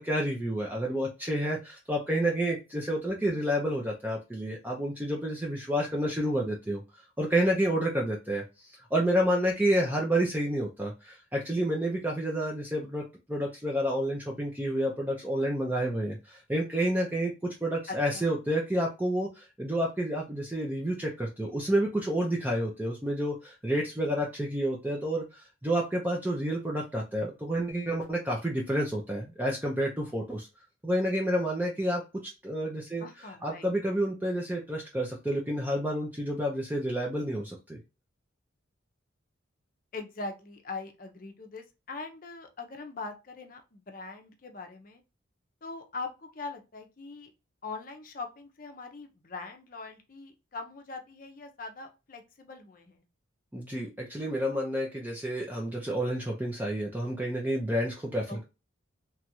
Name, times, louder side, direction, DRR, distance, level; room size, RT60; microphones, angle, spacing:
voice 1, 0.0-6.8 7.2-13.0 13.3-30.5 30.8-33.0 33.4-37.8 53.5-58.4, right 1 dB, 10° right, -1 dB, 0.4 m, -29 dB
voice 2, 17.9-18.3 33.0-33.7 39.9-45.0 45.6-47.3 47.6-53.0 58.3-58.4, left 3 dB, 45° left, 5 dB, 0.6 m, -42 dB
3.0 x 2.4 x 2.8 m, 0.28 s
head